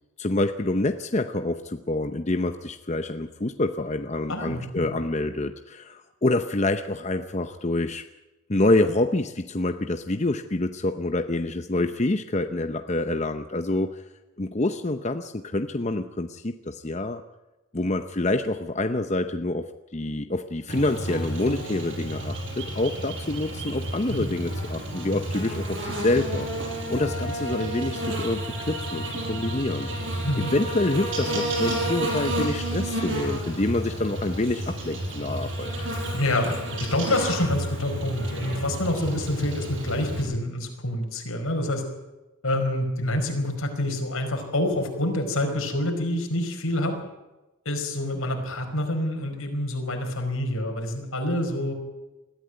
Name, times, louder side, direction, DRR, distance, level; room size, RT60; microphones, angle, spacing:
voice 1, 0.2-8.0 8.5-14.0 14.4-17.2 17.7-26.5 26.9-29.9 30.4-35.7, left 2 dB, 30° left, 8 dB, 0.7 m, -27 dB
voice 2, 4.3-4.9 24.1-24.3 30.2-30.5 36.1-36.5 36.9-41.8 42.4-47.0 47.6-51.7, left 1 dB, 80° left, 3 dB, 5.0 m, -27 dB
Buzz, 20.7-40.2, right 1 dB, 60° right, 5.5 m, -31 dB
21.0 x 14.0 x 9.2 m, 1.1 s
head